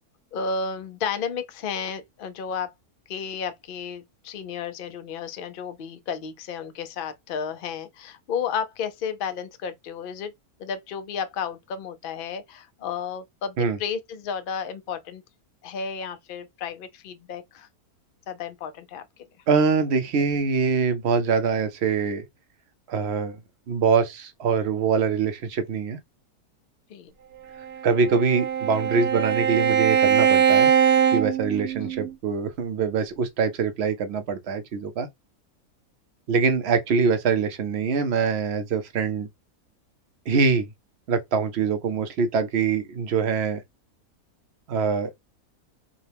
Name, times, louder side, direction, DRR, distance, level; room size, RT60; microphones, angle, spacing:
voice 1, 0.3-2.7 3.1-10.3 10.6-15.2 15.6-17.7 18.3-19.0 26.9-27.1 31.8-32.1, left 6 dB, 75° left, 0.5 m, -32 dB
voice 2, 19.5-22.2 22.9-23.4 23.7-26.0 27.8-30.7 31.1-35.1 36.3-39.3 40.3-40.7 41.1-43.6 44.7-45.2, right 5 dB, 60° right, 0.7 m, -24 dB
Bowed string instrument, 27.6-32.1, right 8 dB, 75° right, 1.1 m, -21 dB
5.0 x 2.2 x 3.3 m
omnidirectional pair, 1.6 m